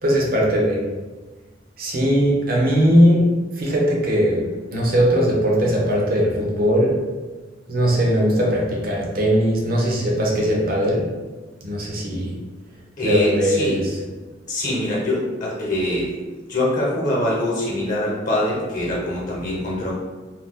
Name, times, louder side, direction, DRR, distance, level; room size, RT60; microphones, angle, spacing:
voice 1, 0.0-0.8 1.8-3.3 3.6-4.5 4.7-7.0 7.7-11.1 11.6-12.3 13.0-13.8, equal, 55° right, -2 dB, 0.8 m, -19 dB
voice 2, 13.0-13.8 14.5-16.2 16.5-19.9, left 1 dB, 45° left, -4 dB, 0.9 m, -23 dB
2.8 x 2.3 x 3.6 m, 1.3 s
head